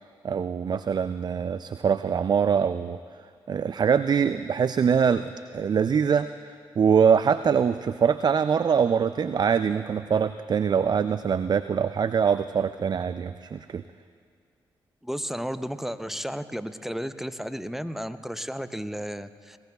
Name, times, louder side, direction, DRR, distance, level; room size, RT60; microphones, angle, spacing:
voice 1, 0.2-3.0 3.5-6.3 6.8-13.8, right 7 dB, 45° right, 12 dB, 0.4 m, -23 dB
voice 2, 15.0-19.6, equal, 5° right, 12 dB, 0.6 m, -33 dB
20.5 x 19.0 x 2.4 m, 2.2 s
hypercardioid pair, 45°, 10 cm